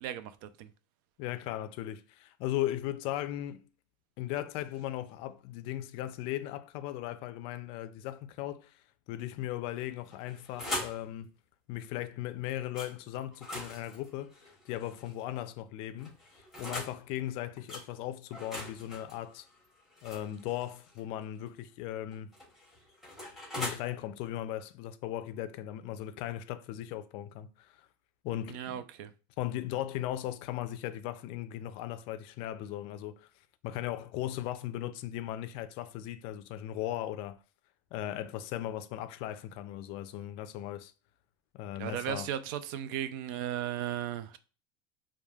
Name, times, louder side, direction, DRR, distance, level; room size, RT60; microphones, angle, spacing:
voice 1, 0.0-0.7 28.5-29.1 41.8-44.4, right 10 dB, 70° right, 0.4 m, -36 dB
voice 2, 1.2-3.7 4.2-8.7 9.1-11.3 11.7-14.3 14.7-16.2 16.6-19.5 20.0-22.3 23.5-27.7 28.2-28.8 29.4-33.2 33.6-37.4 37.9-40.9 41.5-42.3, left 13 dB, 55° left, 0.4 m, -37 dB
sound 1, 10.0-11.0 12.7-12.9 13.3-15.2 16.0-17.0 17.7-17.9 18.3-21.0 22.1-23.8, left 1 dB, 5° right, 1.2 m, -41 dB
3.1 x 2.2 x 2.3 m
supercardioid pair, 140°, 11 cm